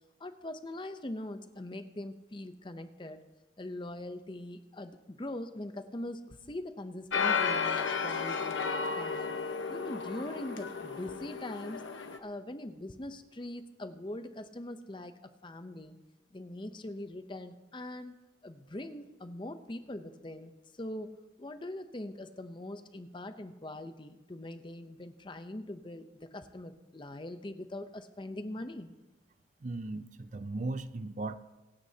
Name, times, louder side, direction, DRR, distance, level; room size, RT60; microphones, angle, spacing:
voice 1, 0.2-3.2 3.6-9.3 9.7-11.8 12.2-16.0 16.3-18.1 18.4-21.1 21.4-28.9, left 1 dB, 25° left, 9 dB, 0.6 m, -42 dB
sound 1, 7.1-12.2, left 5 dB, 85° left, 1.1 m, -33 dB
voice 2, 29.6-31.4, right 2 dB, 40° right, 11 dB, 0.5 m, -37 dB
24.5 x 9.6 x 2.8 m, 1.1 s
head